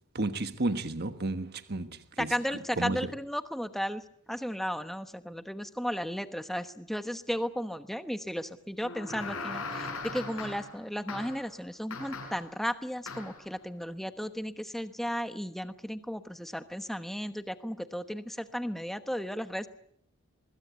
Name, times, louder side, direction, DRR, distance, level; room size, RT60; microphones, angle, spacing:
voice 1, 0.1-2.3 2.8-3.1, right 2 dB, 45° right, 1.3 m, -32 dB
voice 2, 2.2-19.7, equal, ahead, 1.1 m, -34 dB
sound 1, 8.8-10.8 11.1-11.5 11.9-12.5 13.1-13.4, left 3 dB, 70° left, 7.1 m, -39 dB
24.0 x 22.0 x 8.3 m
head